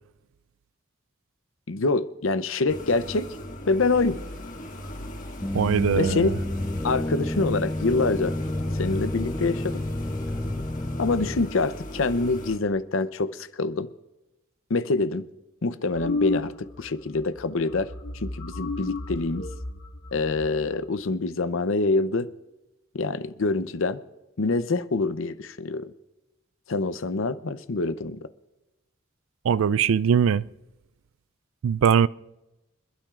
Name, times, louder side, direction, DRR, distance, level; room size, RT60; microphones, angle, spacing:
voice 1, 1.7-3.3 3.7-4.2 6.0-6.3 6.8-8.4 8.7-9.8 11.0-13.9 14.7-15.2 15.6-19.4 20.1-22.3 22.9-24.0 24.4-25.9 26.7-28.3, left 3 dB, 65° left, 0.6 m, -26 dB
sound 1, 2.7-12.6, equal, 40° left, 1.6 m, -38 dB
sound 2, 5.4-11.5, left 1 dB, 10° left, 0.4 m, -30 dB
voice 2, 5.5-6.3 29.4-30.5 31.6-32.1, right 7 dB, 70° right, 0.3 m, -21 dB
sound 3, 15.9-16.9 17.1-17.4 17.7-20.9, left 2 dB, 85° left, 2.2 m, -32 dB
26.5 x 12.0 x 2.4 m
head